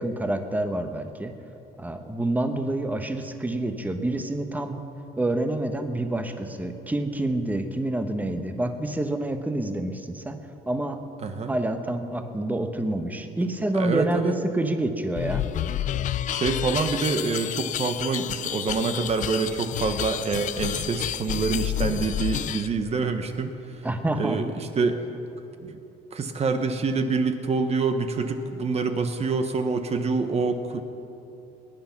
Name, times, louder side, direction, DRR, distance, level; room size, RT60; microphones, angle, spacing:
voice 1, 0.0-1.3 1.8-4.8 5.2-10.4 10.7-11.0 11.5-15.4 23.8-24.5, right 1 dB, 10° right, 7 dB, 1.1 m, -27 dB
voice 2, 11.2-11.6 13.7-14.4 16.3-23.5 24.2-25.0 25.6-25.8 26.1-30.8, right 4 dB, 40° right, 7 dB, 1.1 m, -26 dB
sound 1, 15.1-22.7, left 11 dB, 50° left, 0.4 m, -30 dB
20.5 x 9.6 x 5.9 m, 2.9 s
cardioid pair, 110°, 17 cm